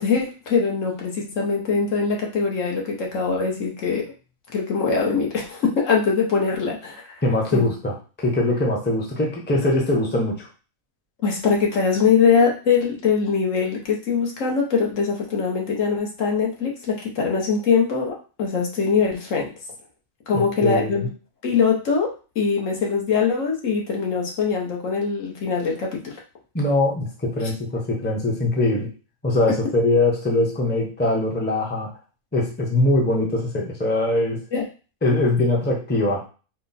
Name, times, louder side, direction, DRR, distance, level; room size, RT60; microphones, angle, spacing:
voice 1, 0.0-4.0 4.5-7.0 7.5-7.7 11.2-19.5 20.3-21.0 21.4-22.1 22.3-26.1 34.5-34.6, left 5 dB, 65° left, -1 dB, 1.3 m, -22 dB
voice 2, 7.2-10.5 20.3-21.1 26.5-28.9 29.2-31.9 32.3-34.4 35.0-36.2, left 2 dB, 10° left, -1 dB, 0.7 m, -22 dB
4.3 x 2.2 x 4.1 m, 0.35 s
omnidirectional pair, 1.4 m